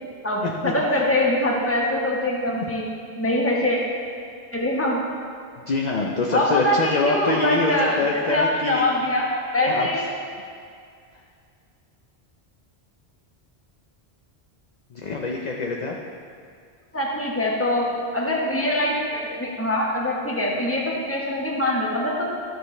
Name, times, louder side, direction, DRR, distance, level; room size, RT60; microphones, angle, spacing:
voice 1, 0.2-2.9 3.2-3.8 4.5-5.0 6.3-10.1 16.9-22.3, left 1 dB, 15° left, -3 dB, 1.1 m, -23 dB
voice 2, 5.7-8.8 9.7-9.9 14.9-16.0, left 3 dB, 45° left, 0 dB, 0.6 m, -24 dB
12.0 x 6.4 x 3.2 m, 2.3 s
omnidirectional pair, 1.1 m